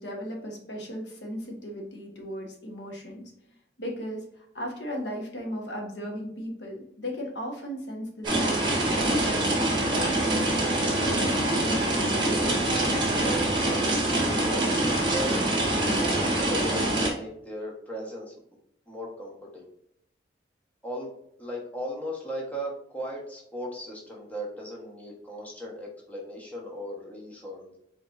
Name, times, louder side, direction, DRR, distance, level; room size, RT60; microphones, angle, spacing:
voice 1, 0.0-3.3 3.8-13.1, equal, 70° left, 1 dB, 1.3 m, -37 dB
sound 1, 8.2-17.1, right 1 dB, 25° right, 1.8 m, -25 dB
voice 2, 13.6-15.4 15.9-18.3 18.9-19.7 20.8-21.1 21.4-27.8, equal, 10° left, -3 dB, 1.2 m, -37 dB
4.5 x 4.4 x 2.6 m, 0.72 s
head